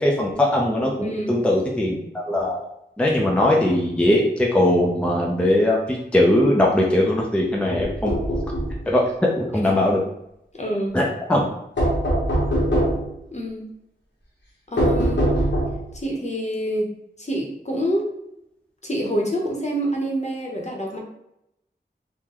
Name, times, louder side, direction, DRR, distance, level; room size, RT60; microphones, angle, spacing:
voice 1, 0.0-2.7 3.0-8.2 8.9-9.1 9.3-10.0 10.9-11.0 11.3-11.5, left 1 dB, 5° left, -2 dB, 0.5 m, -20 dB
voice 2, 1.0-1.4 9.5-9.7 10.5-10.9 13.3-13.7 14.7-15.3 15.9-16.9 17.2-18.1 18.8-21.0, equal, 40° left, -1 dB, 0.8 m, -27 dB
sound 1, 7.8-8.8 11.8-13.1 14.8-15.9, equal, 85° left, 1.0 m, -22 dB
3.7 x 2.1 x 3.0 m, 0.81 s
wide cardioid pair, 55°, 18 cm